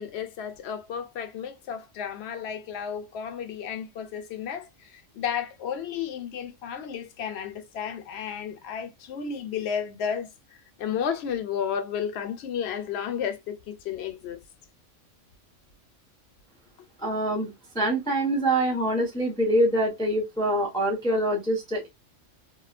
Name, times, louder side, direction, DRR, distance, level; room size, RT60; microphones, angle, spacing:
voice 1, 0.0-10.3 10.8-14.4, left 8 dB, 65° left, 0.7 m, -32 dB
voice 2, 17.0-21.9, right 1 dB, 5° left, 0.4 m, -25 dB
2.9 x 2.2 x 2.4 m
omnidirectional pair, 1.3 m